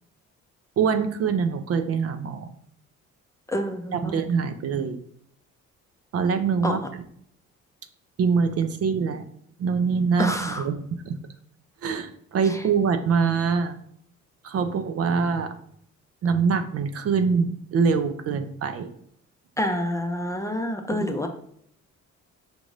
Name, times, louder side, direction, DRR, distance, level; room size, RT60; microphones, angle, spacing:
voice 1, 0.8-2.5 3.9-5.0 6.1-6.8 8.2-9.2 9.6-11.2 11.8-13.8 14.4-15.6 16.2-19.0 20.9-21.1, right 5 dB, 50° right, 9 dB, 0.5 m, -24 dB
voice 2, 3.5-4.1 6.6-6.8 10.2-10.6 19.6-21.3, left 1 dB, 10° left, 4 dB, 0.5 m, -27 dB
5.1 x 2.6 x 3.1 m, 0.68 s
cardioid pair, 90°, 30 cm